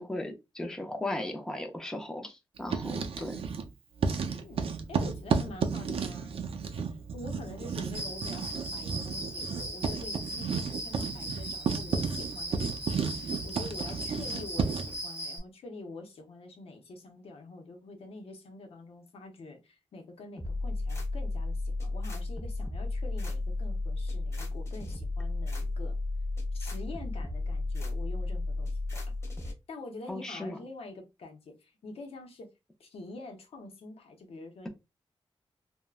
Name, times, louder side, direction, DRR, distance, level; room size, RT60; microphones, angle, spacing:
voice 1, 0.0-3.4 30.1-30.6, left 1 dB, 5° left, 0.5 m, -37 dB
Writing, 2.6-3.7 4.0-15.0, right 5 dB, 70° right, 0.5 m, -33 dB
voice 2, 4.2-6.4 6.7-26.0 26.5-29.0 29.4-32.5 32.8-34.7, left 2 dB, 80° left, 0.7 m, -46 dB
Cricket, 7.9-15.4, right 1 dB, 15° right, 0.9 m, -39 dB
sound 1, 20.4-29.5, left 2 dB, 30° left, 0.9 m, -33 dB
3.5 x 2.1 x 2.3 m
wide cardioid pair, 155°, 10 cm